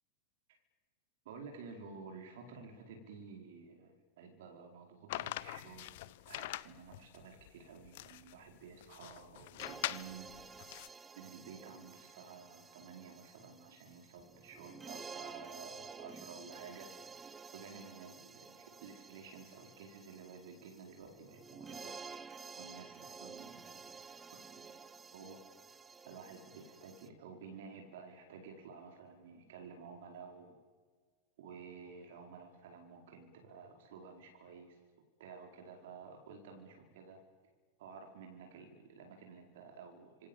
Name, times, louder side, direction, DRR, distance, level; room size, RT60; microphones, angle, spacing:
voice 1, 1.2-10.3 11.2-16.9 17.5-22.0 22.6-23.9 25.1-25.4 26.0-30.6 31.4-34.8 35.2-37.2 37.8-40.3, right 5 dB, 55° right, 3 dB, 4.8 m, -52 dB
sound 1, 5.1-10.9, left 17 dB, 50° left, 0.8 m, -43 dB
sound 2, 9.6-27.1, right 5 dB, 15° right, 1.2 m, -52 dB
27.0 x 25.5 x 7.5 m, 1.5 s
figure-of-eight pair, 90°, 0 cm